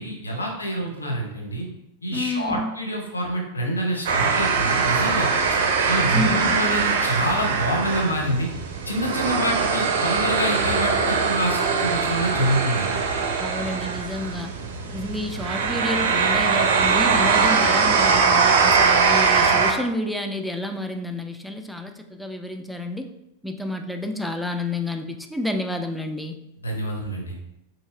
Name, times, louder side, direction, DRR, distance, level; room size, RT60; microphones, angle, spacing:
voice 1, 0.0-1.7 2.0-5.3 5.9-8.5 8.9-13.0 26.6-27.4, equal, 75° left, 0 dB, 0.8 m, -26 dB
voice 2, 2.1-2.8 6.1-6.6 13.4-14.5 14.9-23.1 23.4-26.4, left 1 dB, ahead, 5 dB, 0.3 m, -29 dB
sound 1, 4.1-19.7, right 5 dB, 60° right, 0.5 m, -21 dB
3.9 x 2.8 x 2.4 m, 0.87 s
figure-of-eight pair, 90°, 0 cm